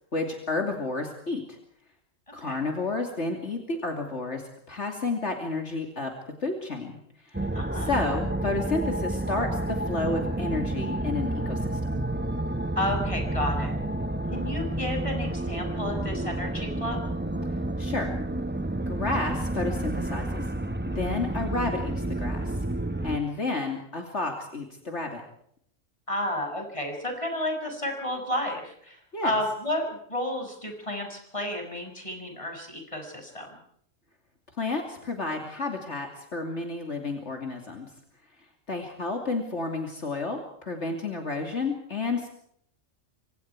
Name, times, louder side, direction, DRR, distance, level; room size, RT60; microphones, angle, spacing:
voice 1, 0.1-1.6 2.3-6.1 6.4-7.0 7.2-12.0 17.8-18.2 18.9-20.4 20.9-22.6 23.0-25.2 29.1-29.4 34.6-37.9 38.7-42.3, left 3 dB, 65° left, 3 dB, 3.1 m, -31 dB
sound 1, 7.3-23.2, right 1 dB, 10° right, 0.9 m, -30 dB
voice 2, 7.5-7.9 12.7-13.8 14.3-17.0 26.1-29.0 29.2-33.5, left 1 dB, 25° left, 3 dB, 6.8 m, -31 dB
28.0 x 25.0 x 4.8 m, 0.68 s
omnidirectional pair, 1.3 m